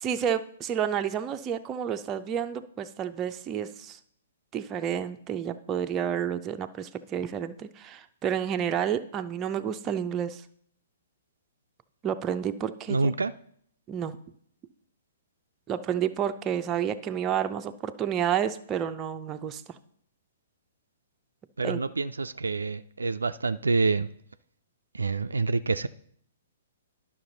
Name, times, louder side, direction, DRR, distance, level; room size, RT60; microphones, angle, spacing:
voice 1, 0.0-4.0 4.5-10.4 12.0-13.1 13.9-14.2 15.7-19.6 21.6-21.8, right 9 dB, 20° right, 8 dB, 0.5 m, -30 dB
voice 2, 12.9-13.3 21.6-24.1 24.9-25.9, right 3 dB, 75° right, 12 dB, 0.3 m, -27 dB
11.0 x 5.9 x 3.9 m, 0.65 s
figure-of-eight pair, 120°, 0 cm